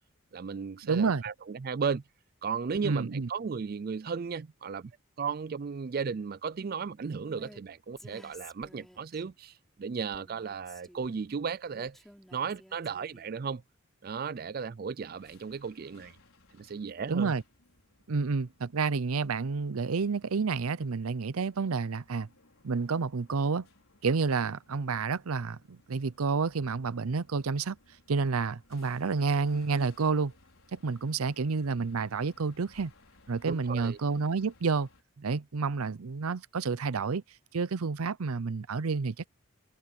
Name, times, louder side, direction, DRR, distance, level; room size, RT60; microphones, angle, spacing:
voice 1, 0.3-2.0 2.4-4.9 5.2-12.0 12.3-13.6 14.0-16.2 16.5-17.3 29.7-29.9 33.5-34.0, right 5 dB, 45° right, 0.4 m, -35 dB
voice 2, 0.8-1.2 2.8-3.3 17.1-17.4 18.1-22.3 22.6-23.7 24.0-27.8 28.1-30.3 30.7-32.9 33.3-34.9 35.2-37.2 37.5-39.3, right 4 dB, 90° right, 0.6 m, -29 dB
Female speech woman speaking, 7.3-7.6 8.0-9.2 10.1-11.2 11.7-13.4, equal, ahead, 4.4 m, -53 dB
sound 1, 15.1-35.0, left 2 dB, 75° left, 5.1 m, -63 dB
head